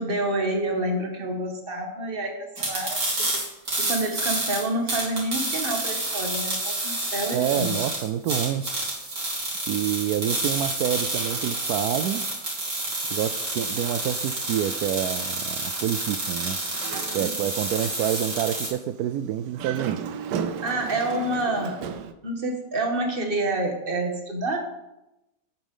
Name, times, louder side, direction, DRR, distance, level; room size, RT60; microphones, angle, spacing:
voice 1, 0.0-3.4 3.8-7.8 20.6-21.8 22.2-24.6, right 1 dB, 35° right, 3 dB, 1.7 m, -28 dB
sound 1, 2.6-18.7, right 2 dB, 55° right, 3.4 m, -29 dB
voice 2, 7.3-8.6 9.7-12.2 13.1-16.6 17.1-20.0, right 11 dB, 70° right, 10 dB, 1.0 m, -27 dB
Dog, 16.6-17.7 18.1-18.2 19.4-22.1, right 7 dB, 90° right, 1.4 m, -33 dB
9.0 x 8.5 x 5.6 m, 0.92 s
omnidirectional pair, 1.8 m